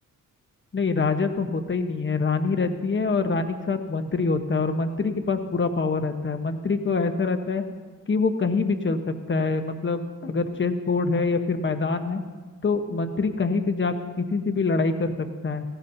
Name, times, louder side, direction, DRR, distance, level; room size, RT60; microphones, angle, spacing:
voice 1, 0.7-7.7 8.1-12.2 12.6-15.6, left 4 dB, 35° left, 7 dB, 1.0 m, -25 dB
18.5 x 16.0 x 2.7 m, 1.4 s
cardioid pair, 90°, 34 cm